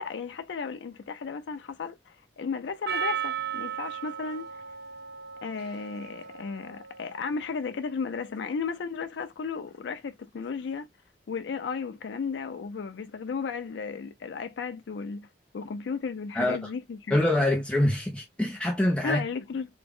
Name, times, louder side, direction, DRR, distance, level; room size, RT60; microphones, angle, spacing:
voice 1, 0.0-4.5 5.4-10.9 11.3-15.3 15.5-17.2 19.0-19.7, left 5 dB, 80° left, 0.4 m, -34 dB
Percussion, 2.9-7.5, right 8 dB, 65° right, 0.7 m, -36 dB
voice 2, 17.1-19.2, left 1 dB, 5° left, 0.4 m, -25 dB
3.5 x 2.0 x 3.4 m
head